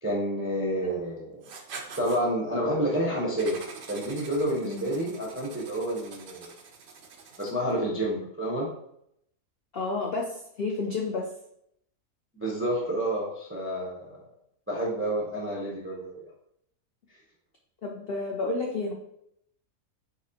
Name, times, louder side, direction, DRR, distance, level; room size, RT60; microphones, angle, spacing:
voice 1, 0.0-1.5 2.0-3.6 3.9-6.5 7.4-8.7 12.3-14.2 14.7-16.2, right 1 dB, 20° right, -3 dB, 0.3 m, -29 dB
Writing, 1.4-2.2 3.4-7.7, right 5 dB, 60° right, 0.7 m, -45 dB
voice 2, 9.7-11.2 17.8-18.9, left 3 dB, 70° left, 0 dB, 0.5 m, -31 dB
4.2 x 4.1 x 2.7 m, 0.73 s
omnidirectional pair, 1.6 m